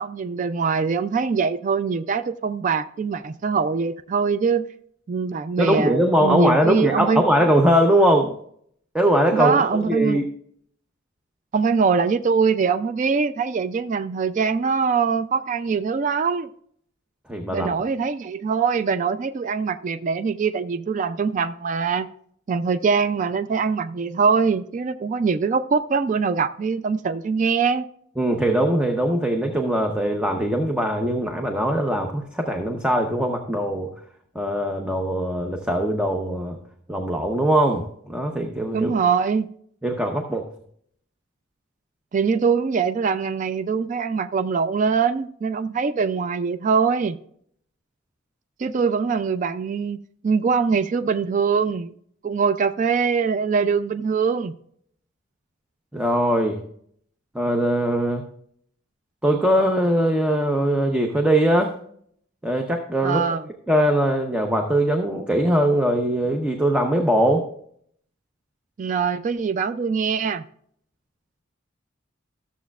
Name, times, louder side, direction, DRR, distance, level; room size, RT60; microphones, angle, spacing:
voice 1, 0.0-4.7 5.1-7.3 9.3-10.2 11.5-16.5 17.5-22.1 22.5-27.9 38.7-39.5 42.1-47.2 48.6-50.0 50.2-51.9 52.2-54.5 63.0-63.5 68.8-70.4, right 5 dB, 40° right, 0.3 m, -23 dB
voice 2, 5.6-8.3 8.9-10.2 17.3-17.7 28.2-33.9 34.3-36.6 36.9-38.9 39.8-40.4 55.9-56.6 57.3-58.2 59.2-61.7 62.4-63.2 63.7-67.4, right 1 dB, 5° right, 0.7 m, -21 dB
13.5 x 7.2 x 2.3 m
head